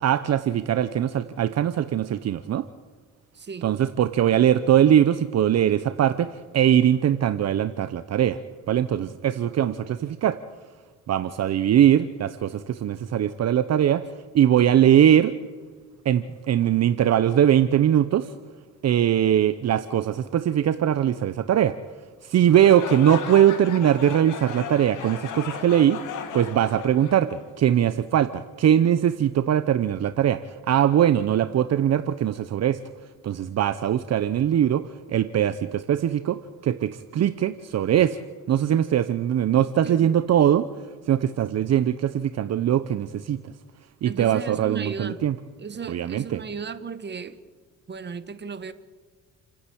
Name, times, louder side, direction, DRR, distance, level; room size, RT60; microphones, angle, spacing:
voice 1, 0.0-2.6 3.6-8.4 8.7-10.4 11.1-14.0 14.3-15.3 16.0-18.3 18.8-21.7 22.2-26.0 26.3-30.4 30.7-32.8 33.2-34.8 35.1-38.2 38.5-40.7 41.1-43.4 44.0-45.3 45.9-46.4, right 10 dB, 60° right, 12 dB, 0.9 m, -21 dB
voice 2, 3.3-3.7 39.8-40.1 44.0-45.2 45.6-47.4 47.9-48.7, right 5 dB, 35° right, 12 dB, 1.5 m, -35 dB
sound 1, 22.5-27.7, left 7 dB, 85° left, 2.4 m, -36 dB
30.0 x 10.5 x 8.7 m, 1.5 s
cardioid pair, 90°, 30 cm